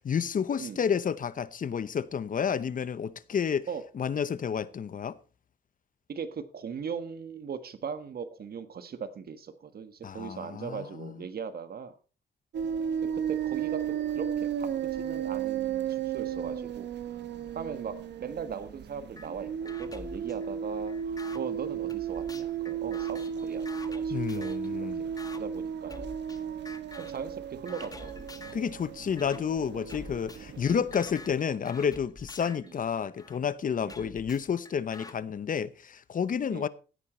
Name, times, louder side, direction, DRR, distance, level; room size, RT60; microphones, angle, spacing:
voice 1, 0.0-3.7 3.9-5.2 10.0-11.1 24.1-25.0 28.5-36.7, left 7 dB, 50° left, 0.9 m, -30 dB
voice 2, 6.1-12.0 13.0-17.2 17.5-26.1 27.0-28.6 29.7-29.8 30.7-30.9 32.4-32.7 33.8-34.2 36.5-36.7, right 6 dB, 60° right, 1.5 m, -39 dB
sound 1, 12.5-31.4, right 8 dB, 85° right, 1.2 m, -34 dB
sound 2, 19.2-19.3 19.7-21.4 21.9-24.7 25.2-25.4 25.9-26.4 26.7-27.2 27.7-28.7 29.2-29.4 29.9-33.4 33.9-35.1, left 2 dB, 20° left, 1.5 m, -47 dB
15.5 x 9.0 x 4.4 m
cardioid pair, 105°, 18 cm